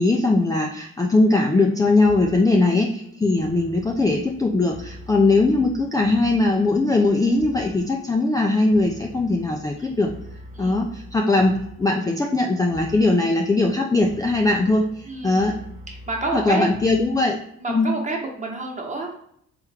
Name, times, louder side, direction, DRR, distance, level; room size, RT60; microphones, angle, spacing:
voice 1, 0.0-10.1 10.6-15.6 16.3-17.4 17.7-17.9, left 2 dB, 10° left, 1 dB, 0.4 m, -20 dB
sound 1, 1.5-17.4, equal, 45° right, 1.2 m, -44 dB
voice 2, 15.0-15.4 15.9-16.7 17.6-19.2, right 3 dB, 25° right, 0 dB, 1.1 m, -29 dB
3.5 x 3.1 x 3.4 m, 0.69 s
cardioid pair, 90°, 30 cm